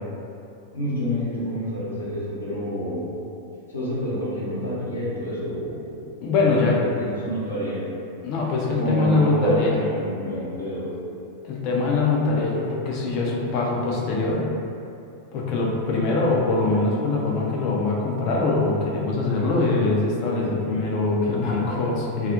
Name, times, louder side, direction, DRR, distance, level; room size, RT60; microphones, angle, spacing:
voice 1, 0.7-3.1 3.7-7.8 8.7-10.9 21.1-21.5, equal, 80° left, -9 dB, 0.7 m, -28 dB
voice 2, 6.2-6.8 8.2-9.7 11.4-14.5 15.3-22.3, left 3 dB, 40° left, -2 dB, 0.4 m, -23 dB
2.3 x 2.0 x 2.6 m, 2.6 s
figure-of-eight pair, 90°, 0 cm